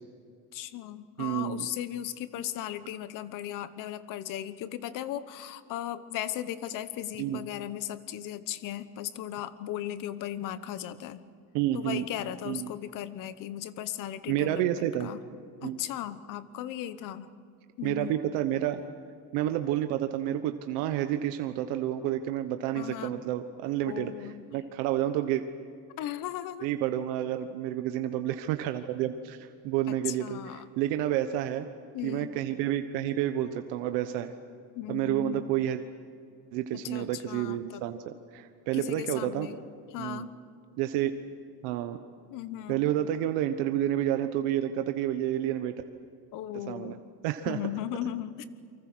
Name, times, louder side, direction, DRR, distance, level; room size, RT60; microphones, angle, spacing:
voice 1, 0.5-11.2 11.7-15.2 15.6-17.3 17.8-18.2 22.7-23.2 23.9-24.5 26.0-26.7 29.9-30.7 31.9-32.4 34.7-35.5 36.7-37.9 38.7-39.6 39.9-40.4 42.3-42.8 46.3-47.0 47.5-48.4, left 12 dB, 45° left, 13 dB, 1.1 m, -37 dB
voice 2, 1.2-1.7 7.2-7.4 11.5-12.0 12.4-12.7 14.3-15.1 15.6-15.8 17.8-18.8 19.3-25.4 26.6-31.7 32.0-34.3 34.9-35.8 36.5-38.0 38.3-39.5 40.0-40.3 40.8-41.1 41.6-42.0 42.7-45.7 46.5-47.0 47.2-47.6, right 12 dB, 75° right, 8 dB, 1.3 m, -30 dB
29.5 x 24.5 x 6.3 m, 2.3 s
cardioid pair, 165°, 43 cm